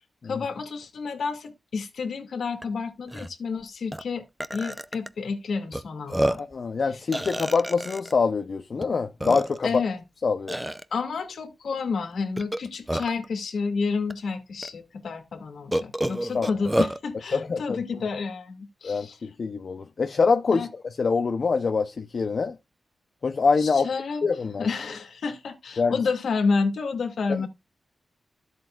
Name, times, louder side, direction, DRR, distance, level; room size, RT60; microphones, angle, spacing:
voice 1, 0.2-4.2 4.5-6.4 9.6-10.0 10.9-19.2 20.5-20.7 23.6-24.2 24.6-27.5, left 4 dB, 80° left, 2.4 m, -30 dB
Burping eructation, 2.6-2.7 3.1-3.3 3.9-4.0 4.4-5.1 5.7-5.8 6.1-6.5 7.1-8.1 8.8-8.9 9.2-9.8 10.5-10.8 12.4-13.3 14.1-14.2 14.6-14.7 15.7-17.0, right 1 dB, 10° right, 0.7 m, -28 dB
voice 2, 6.4-9.8 10.2-10.6 16.3-16.5 17.3-17.8 18.8-22.6 23.2-23.9 24.2-24.7 25.8-26.0 27.3-27.5, left 4 dB, 60° left, 0.8 m, -25 dB
13.0 x 7.8 x 2.5 m
cardioid pair, 80°, 0 cm